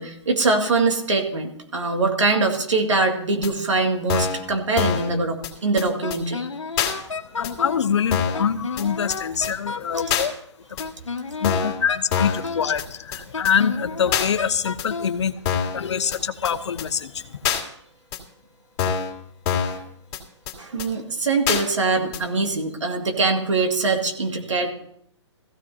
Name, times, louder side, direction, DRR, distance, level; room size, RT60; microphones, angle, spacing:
voice 1, 0.0-6.5 19.7-19.8 20.6-24.7, right 3 dB, 75° right, 3 dB, 2.2 m, -23 dB
sound 1, 3.4-3.5 4.1-4.4 4.8-5.1 5.4-5.5 5.8-5.9 6.1-6.2 6.8-6.9 7.4-7.5 8.1-8.4 8.8-8.9 9.1-9.2 9.4-9.5 10.1-10.3 10.8-10.9 11.4-11.8 12.1-12.4 12.8-12.9 13.1-13.2 13.4-13.5 14.1-14.3 14.8-14.9 15.5-15.8 16.1-16.2 16.4-16.5 16.8-16.9 17.4-17.6 18.1-18.2 18.8-19.1 19.5-19.8 20.1-20.2 20.5-20.6 20.8-20.9 21.5-21.6 22.1-22.2, left 7 dB, 35° left, 2.5 m, -24 dB
Wind instrument woodwind instrument, 6.0-7.9 8.3-10.3 10.8-12.8 13.3-15.2, left 4 dB, 85° left, 1.1 m, -31 dB
voice 2, 6.8-10.3 10.7-10.8 11.4-15.3 15.7-17.4, left 7 dB, 65° left, 10 dB, 0.9 m, -25 dB
17.5 x 15.0 x 2.8 m, 0.71 s
hypercardioid pair, 130°, 16 cm